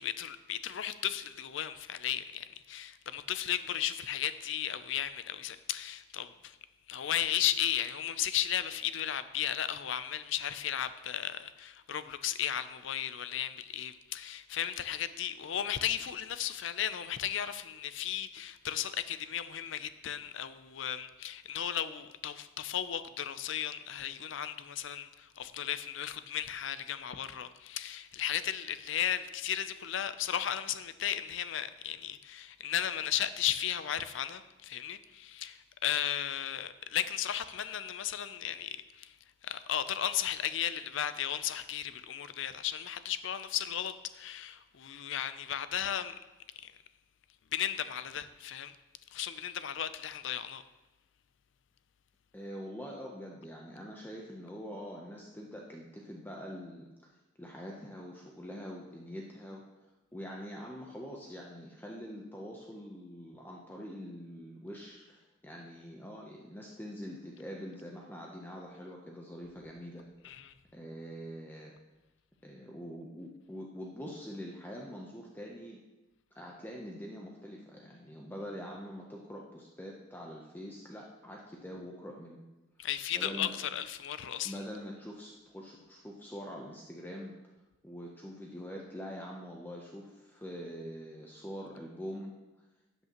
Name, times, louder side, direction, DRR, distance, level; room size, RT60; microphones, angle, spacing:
voice 1, 0.0-6.6 6.9-39.1 39.4-46.2 46.6-46.7 47.5-48.8 49.1-50.6 70.2-70.5 82.8-84.5, left 10 dB, 65° left, 0.5 m, -35 dB
voice 2, 52.3-56.9 57.4-59.6 60.1-70.1 70.7-71.7 72.4-75.8 76.3-82.4 83.1-83.5 84.4-87.3 87.8-92.3, equal, 10° left, 0.7 m, -44 dB
12.0 x 8.1 x 3.0 m
head